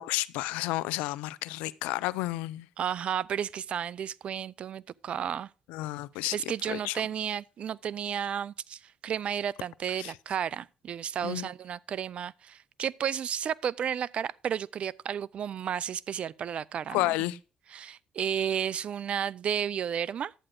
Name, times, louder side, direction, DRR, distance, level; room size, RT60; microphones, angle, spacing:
voice 1, 0.0-2.7 5.7-6.4 6.7-7.0 10.0-10.1 11.2-11.5 16.9-17.4, left 18 dB, 85° left, 0.5 m, -31 dB
voice 2, 2.8-5.5 6.3-17.1 17.7-20.3, right 8 dB, 60° right, 0.4 m, -32 dB
11.5 x 8.9 x 3.8 m
supercardioid pair, 60°, 2 cm